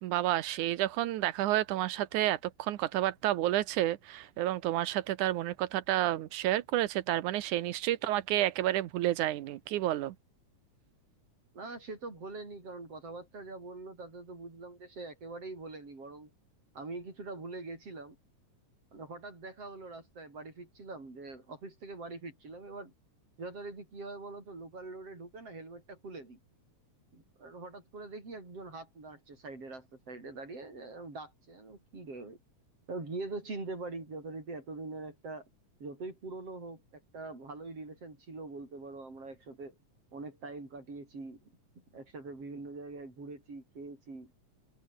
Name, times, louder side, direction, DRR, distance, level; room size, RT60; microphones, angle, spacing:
voice 1, 0.0-10.2, right 14 dB, 85° right, 2.4 m, -30 dB
voice 2, 11.5-16.3 16.8-18.2 18.9-22.9 23.4-26.4 27.1-32.4 32.9-35.5 35.8-39.7 40.1-41.4 41.9-44.3, right 3 dB, 50° right, 8.7 m, -43 dB
omnidirectional pair, 3.5 m